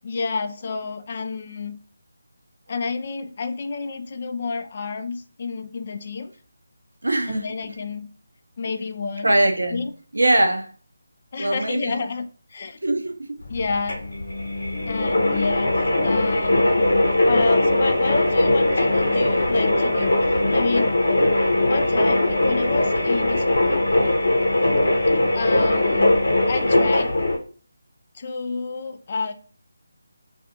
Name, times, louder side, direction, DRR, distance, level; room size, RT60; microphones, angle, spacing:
voice 1, 0.0-1.8 2.7-6.3 7.3-8.1 8.6-9.3 9.7-9.9 11.3-12.8 13.5-14.0 14.9-16.9 17.2-20.9 21.7-23.9 25.3-26.1 26.5-27.1 28.1-29.3, left 4 dB, 40° left, 0.3 m, -29 dB
voice 2, 7.0-7.5 9.2-9.8 10.1-10.7 11.4-12.0 12.8-13.4, right 1 dB, 75° right, 0.5 m, -21 dB
sound 1, 13.4-27.4, left 1 dB, 65° left, 0.7 m, -20 dB
2.4 x 2.3 x 2.7 m
figure-of-eight pair, 155°, 0 cm